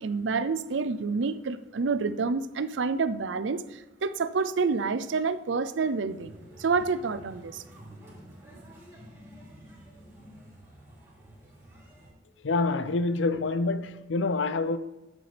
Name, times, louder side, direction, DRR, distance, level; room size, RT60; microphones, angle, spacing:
voice 1, 0.0-6.3 6.6-7.6, right 4 dB, 80° right, 0.5 m, -28 dB
sound 1, 6.1-12.1, equal, 15° right, 3.1 m, -50 dB
voice 2, 12.4-14.8, left 3 dB, 85° left, 0.6 m, -27 dB
11.5 x 8.3 x 3.4 m
head